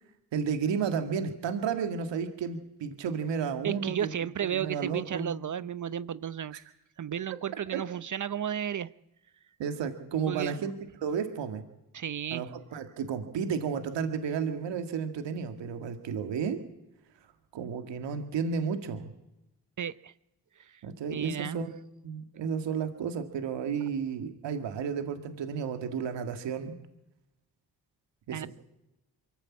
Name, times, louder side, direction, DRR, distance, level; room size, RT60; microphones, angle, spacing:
voice 1, 0.3-4.1 4.5-5.3 6.5-6.6 7.7-7.8 9.6-10.7 11.0-11.6 12.3-16.6 17.5-19.1 20.8-21.8 22.0-26.7 28.3-28.5, right 6 dB, 80° right, 2.1 m, -32 dB
voice 2, 3.6-6.6 7.0-8.9 10.3-10.6 11.9-12.5 19.8-20.1 20.6-20.8 21.1-21.6 28.3-28.5, right 9 dB, 45° right, 0.7 m, -33 dB
23.0 x 15.0 x 8.5 m
cardioid pair, 70°, 42 cm